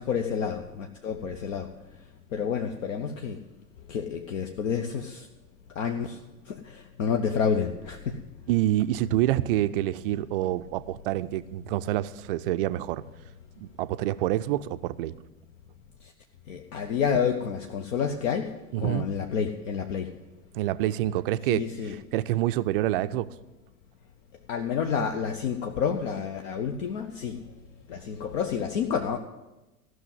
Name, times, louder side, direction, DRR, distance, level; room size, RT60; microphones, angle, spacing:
voice 1, 0.0-1.7 2.3-3.4 3.9-5.3 5.8-6.2 6.5-8.0 16.5-20.1 21.4-22.0 24.5-27.4 27.9-29.2, left 7 dB, 55° left, 5 dB, 0.9 m, -29 dB
voice 2, 8.5-13.0 13.6-15.1 18.7-19.1 20.5-23.3, right 14 dB, 40° right, 13 dB, 0.4 m, -27 dB
14.5 x 6.2 x 7.9 m, 1.0 s
figure-of-eight pair, 85°, 45 cm